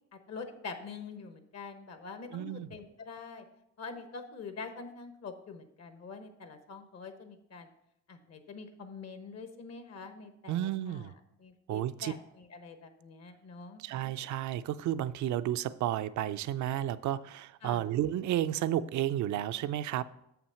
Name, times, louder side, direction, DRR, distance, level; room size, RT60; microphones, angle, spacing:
voice 1, 0.1-3.4 3.8-7.7 8.1-11.1 11.4-13.8 17.6-17.8, left 4 dB, 55° left, 8 dB, 1.1 m, -45 dB
voice 2, 2.3-2.7 10.5-11.1 11.7-12.1 13.8-20.0, right 12 dB, 70° right, 15 dB, 0.5 m, -32 dB
7.0 x 5.9 x 5.6 m, 0.79 s
cardioid pair, 90°, 30 cm